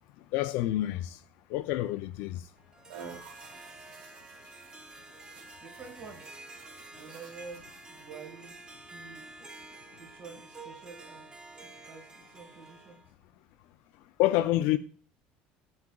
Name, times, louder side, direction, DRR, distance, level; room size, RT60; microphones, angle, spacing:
voice 1, 0.3-1.2 1.5-2.4 14.2-14.8, left 15 dB, 70° left, 0.4 m, -27 dB
Harp, 2.6-13.1, right 2 dB, 20° right, 0.6 m, -49 dB
sound 1, 2.9-8.3, right 6 dB, 75° right, 1.3 m, -51 dB
voice 2, 5.6-6.5 6.9-8.5 8.9-9.3 10.0-11.3 11.6-13.0, right 5 dB, 55° right, 1.6 m, -48 dB
9.5 x 4.8 x 2.3 m
cardioid pair, 130°, 4 cm